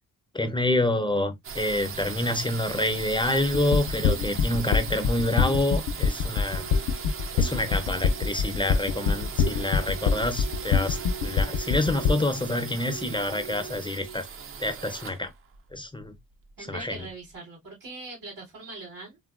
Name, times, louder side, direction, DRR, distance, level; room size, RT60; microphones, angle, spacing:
voice 1, 0.3-6.7 7.3-14.3 14.6-15.3 15.7-16.1 16.7-17.0, left 1 dB, 15° left, 0.4 m, -27 dB
sound 1, 1.4-17.1, right 6 dB, 40° right, 0.4 m, -39 dB
sound 2, 3.5-12.1, left 6 dB, 75° left, 0.5 m, -24 dB
sound 3, 6.0-14.1, right 6 dB, 55° right, 1.1 m, -44 dB
voice 2, 7.4-7.7 16.6-19.2, right 2 dB, 90° right, 2.3 m, -42 dB
3.7 x 2.1 x 2.3 m
cardioid pair, 100°, 33 cm